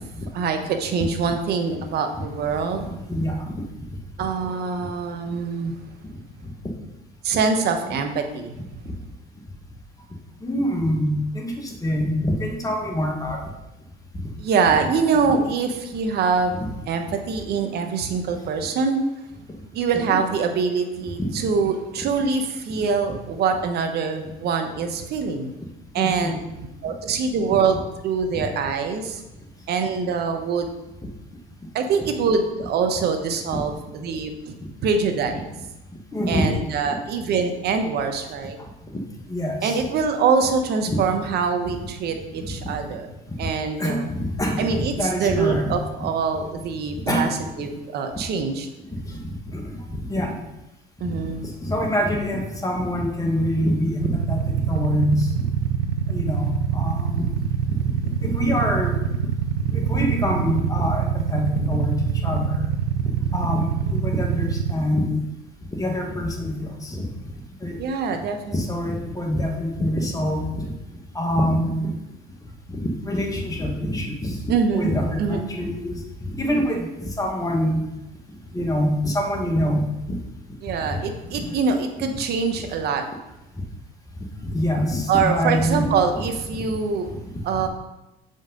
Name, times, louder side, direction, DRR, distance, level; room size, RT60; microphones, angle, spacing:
voice 1, 0.3-3.0 4.2-5.8 7.2-8.5 14.4-19.0 19.7-25.5 25.9-26.3 26.8-27.8 28.0-29.2 29.7-30.7 31.7-34.6 34.8-35.4 36.3-38.6 39.6-43.1 43.4-44.1 44.6-48.7 51.0-51.5 67.8-68.6 74.5-74.9 75.2-75.4 80.6-83.0 85.1-87.1 87.4-87.7, right 5 dB, 55° right, 6 dB, 1.1 m, -24 dB
voice 2, 3.1-3.6 6.4-6.5 10.4-13.4 16.6-16.7 19.9-20.2 21.2-21.4 26.0-26.4 28.4-28.5 36.1-36.5 36.9-37.0 39.3-39.8 40.9-41.0 42.4-42.7 43.8-45.7 47.1-47.4 48.1-48.3 49.0-49.2 49.5-50.3 51.6-55.3 56.1-57.3 57.7-57.8 58.2-59.0 59.7-62.6 63.3-65.2 65.8-67.1 67.6-67.8 68.5-70.7 71.2-71.9 72.7-76.0 76.2-77.9 78.5-80.2 80.8-80.9 81.4-81.6 82.6-82.7 84.4-85.9 87.5-87.6, equal, 15° left, 1 dB, 1.8 m, -25 dB
Motorcycle / Idling, 54.0-64.7, right 8 dB, 75° right, 0.6 m, -25 dB
7.0 x 5.5 x 3.9 m, 0.96 s
supercardioid pair, 85°, 20 cm